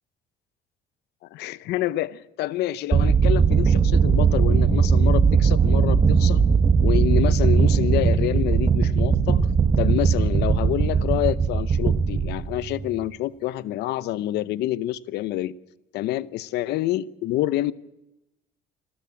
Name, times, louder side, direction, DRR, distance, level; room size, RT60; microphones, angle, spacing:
voice 1, 1.3-6.4 6.8-9.4 9.8-15.5 15.9-17.7, left 15 dB, 80° left, 16 dB, 0.8 m, -27 dB
sound 1, 2.9-13.0, right 5 dB, 30° right, 1.4 m, -19 dB
27.0 x 13.0 x 8.6 m, 0.95 s
cardioid pair, 110°, 17 cm